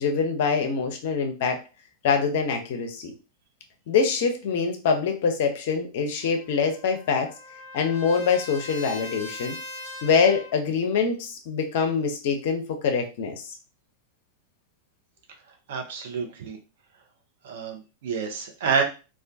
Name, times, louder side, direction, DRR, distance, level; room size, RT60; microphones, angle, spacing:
voice 1, 0.0-1.6 2.0-3.1 3.9-7.3 7.7-9.6 10.0-13.4, left 5 dB, 55° left, 5 dB, 0.5 m, -24 dB
Trumpet, 6.2-10.6, left 3 dB, 85° right, 1.1 m, -40 dB
voice 2, 15.7-16.6 17.4-18.8, right 6 dB, 55° right, 4 dB, 0.6 m, -28 dB
2.3 x 2.2 x 2.5 m, 0.31 s
figure-of-eight pair, 90°, 0 cm